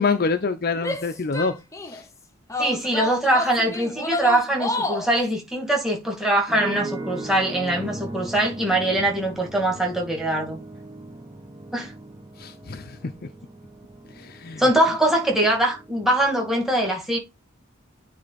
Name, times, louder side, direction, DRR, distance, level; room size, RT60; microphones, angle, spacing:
voice 1, 0.0-1.6 1.9-2.0 12.4-13.0 14.2-14.6, left 4 dB, 45° left, 0.6 m, -26 dB
Female speech woman speaking / Yell, 0.8-2.0 2.5-5.1, left 2 dB, 15° left, 0.9 m, -29 dB
voice 2, 2.6-10.6 11.7-11.9 14.6-17.2, right 1 dB, ahead, 2.4 m, -22 dB
sound 1, 6.5-16.5, right 2 dB, 20° right, 1.1 m, -38 dB
9.6 x 3.4 x 4.1 m
head